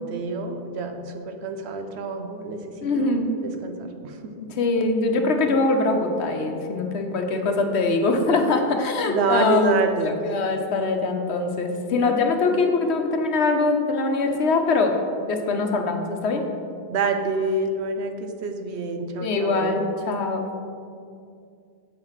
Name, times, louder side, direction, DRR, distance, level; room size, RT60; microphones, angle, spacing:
voice 1, 0.0-3.1 3.6-4.3 9.1-10.2 16.9-19.8, right 3 dB, 85° right, 6 dB, 1.0 m, -27 dB
voice 2, 2.8-3.3 4.4-9.8 10.0-14.9 15.3-16.4 19.2-20.5, left 3 dB, 80° left, 4 dB, 1.1 m, -23 dB
7.1 x 4.9 x 5.6 m, 2.4 s
omnidirectional pair, 1.1 m